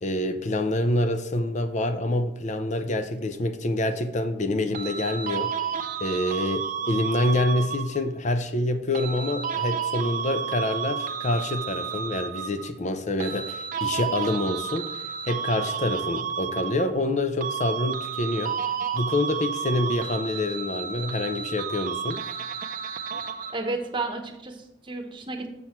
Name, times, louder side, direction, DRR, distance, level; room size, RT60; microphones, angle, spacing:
voice 1, 0.0-5.5 6.0-18.6 18.9-22.2, left 1 dB, 40° left, 9 dB, 0.6 m, -27 dB
sound 1, 4.7-8.1 8.9-12.7 13.2-17.1 17.4-23.7, right 7 dB, 45° right, 0.5 m, -31 dB
voice 2, 23.5-25.5, right 3 dB, 25° right, 3 dB, 1.0 m, -32 dB
7.2 x 6.2 x 4.5 m, 0.85 s
head